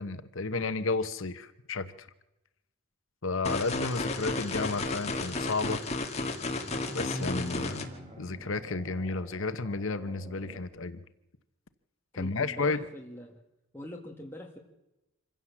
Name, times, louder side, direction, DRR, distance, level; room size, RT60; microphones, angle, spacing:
voice 1, 0.0-2.1 3.2-5.8 6.9-7.9 8.2-11.0 12.1-12.8, left 3 dB, 60° left, 12 dB, 1.0 m, -32 dB
sound 1, 3.4-7.8, left 2 dB, 30° left, 2.1 m, -33 dB
sound 2, 3.9-5.0 6.2-10.6, equal, 30° right, 3.3 m, -44 dB
voice 2, 12.1-13.4 13.7-14.6, left 1 dB, 10° left, -1 dB, 2.0 m, -43 dB
26.0 x 16.0 x 7.4 m, 0.95 s
head